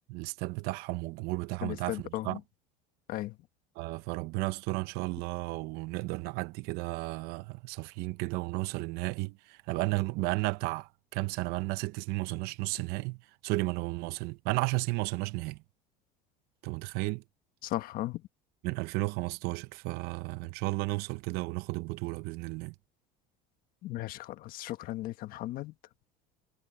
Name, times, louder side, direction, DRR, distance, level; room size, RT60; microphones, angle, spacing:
voice 1, 0.1-2.4 3.8-13.2 13.4-15.6 16.6-17.2 18.6-22.7, right 23 dB, 65° right, 0.8 m, -33 dB
voice 2, 1.6-2.4 3.1-3.3 17.6-18.2 23.8-25.7, left 15 dB, 60° left, 1.4 m, -36 dB
supercardioid pair, 105°, 17 cm